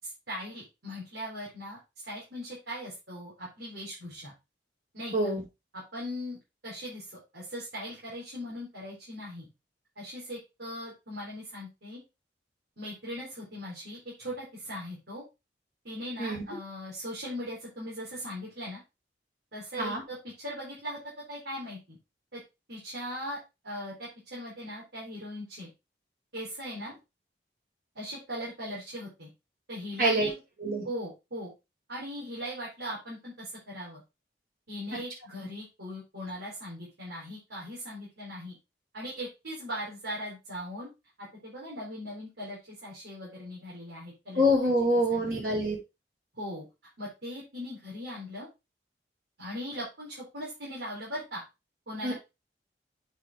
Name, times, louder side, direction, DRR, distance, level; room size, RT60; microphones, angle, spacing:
voice 1, 0.0-4.3 4.9-5.1 5.9-6.4 6.6-9.5 10.0-12.0 12.8-15.2 15.8-18.8 19.5-21.0 21.3-22.0 22.3-22.4 22.7-23.4 23.6-25.7 26.3-26.9 27.9-29.3 29.7-30.4 30.8-31.5 31.9-34.0 34.7-38.6 38.9-40.9 41.2-44.7 45.1-45.3 46.3-46.6 47.0-48.5 49.4-51.4 51.9-52.1, equal, 80° right, -6 dB, 4.2 m, -39 dB
voice 2, 44.3-45.8 52.0-52.1, equal, 55° right, -4 dB, 4.8 m, -26 dB
8.2 x 5.7 x 3.6 m, 0.25 s
head